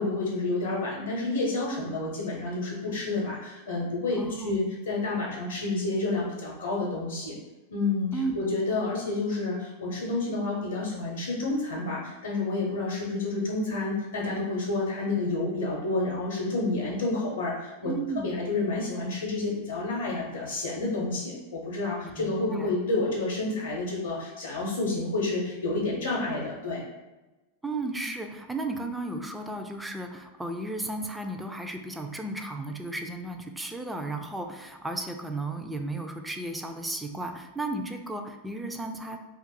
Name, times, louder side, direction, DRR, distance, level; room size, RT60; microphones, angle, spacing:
voice 1, 0.0-7.4 7.7-17.9 18.2-26.8, left 2 dB, 70° left, -4 dB, 0.6 m, -29 dB
voice 2, 4.2-4.6 8.1-8.4 17.8-18.4 22.0-22.8 27.6-39.2, right 2 dB, 5° right, 4 dB, 0.3 m, -34 dB
2.6 x 2.3 x 3.7 m, 1.1 s
figure-of-eight pair, 90°, 0 cm